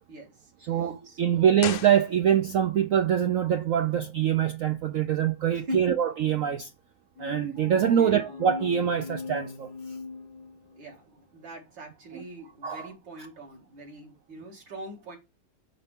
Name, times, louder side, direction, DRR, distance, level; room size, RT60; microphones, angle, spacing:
voice 1, 0.1-1.5 5.5-6.0 7.4-7.5 7.9-8.4 10.8-15.2, equal, 70° right, 2.8 m, -42 dB
voice 2, 0.6-6.7 7.2-9.7 12.1-12.2 12.6-12.9, right 9 dB, 90° right, 0.7 m, -24 dB
sound 1, 1.6-2.7 2.9-3.0, left 11 dB, 80° left, 1.4 m, -37 dB
sound 2, 7.2-10.9, left 4 dB, 65° left, 1.2 m, -39 dB
6.5 x 5.5 x 3.4 m
omnidirectional pair, 2.1 m